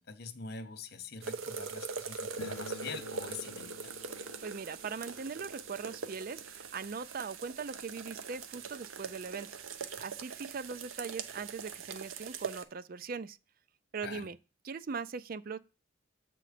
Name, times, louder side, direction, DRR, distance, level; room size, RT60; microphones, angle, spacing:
voice 1, 0.0-4.0 14.0-14.3, left 5 dB, 50° left, 0.8 m, -45 dB
sound 1, 1.2-12.6, right 5 dB, 80° right, 0.8 m, -42 dB
sound 2, 2.4-9.1 9.3-9.4 9.7-9.8 10.5-10.6 10.9-12.1, left 3 dB, 80° left, 0.4 m, -52 dB
voice 2, 4.2-9.5 9.8-13.4 13.9-14.4 14.6-15.6, right 5 dB, 45° right, 0.4 m, -40 dB
7.6 x 3.8 x 5.0 m
head